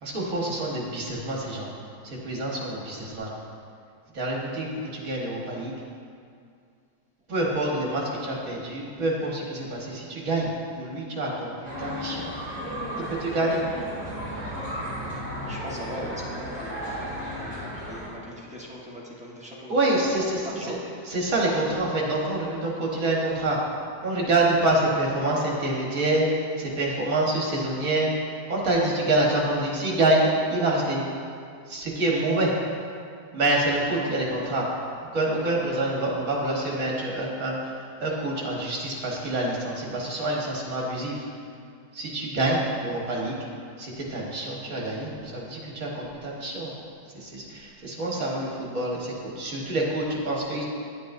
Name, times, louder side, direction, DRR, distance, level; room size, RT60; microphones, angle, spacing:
voice 1, 0.0-1.7 2.0-3.3 4.1-5.7 7.3-10.5 10.8-12.3 13.1-13.6 19.7-20.7 21.1-23.6 24.0-31.0 31.7-32.5 33.3-34.7 35.1-41.2 41.9-43.4 43.8-46.7 47.1-50.7, right 2 dB, 60° right, -3 dB, 1.8 m, -26 dB
sound 1, 11.6-18.1, equal, 35° left, 2.4 m, -34 dB
voice 2, 15.4-21.1 48.0-48.2, equal, 5° right, -6 dB, 1.0 m, -40 dB
9.7 x 8.4 x 2.6 m, 2.3 s
omnidirectional pair, 1.6 m